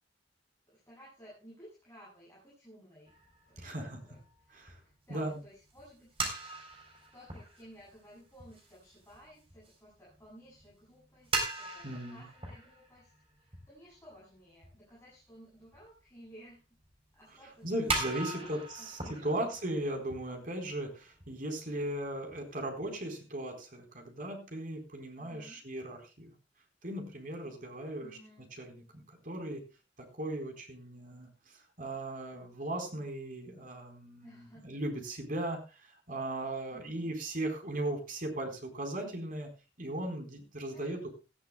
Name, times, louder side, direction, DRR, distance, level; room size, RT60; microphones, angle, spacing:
voice 1, 0.7-3.2 3.5-4.2 4.4-6.1 7.1-13.1 13.4-16.6 17.1-17.7 18.3-19.6 25.2-25.6 28.0-28.5 34.2-34.7 36.7-37.1 40.7-41.1, equal, 15° left, -6 dB, 7.7 m, -56 dB
sound 1, 3.1-10.7 11.0-14.2 14.6-14.7 15.6-16.0 16.3-16.4 16.8-16.9 17.5-17.6 17.9-20.9 21.2-21.3 21.7-21.8 22.1-23.0, right 3 dB, 30° right, 3.9 m, -40 dB
voice 2, 3.6-4.0 4.5-4.8 5.1-5.4 11.8-12.2 17.6-26.3 26.8-28.2 28.5-29.6 30.0-39.5 39.8-41.1, right 1 dB, 50° right, 3 dB, 4.3 m, -37 dB
18.5 x 14.0 x 2.3 m, 0.29 s
head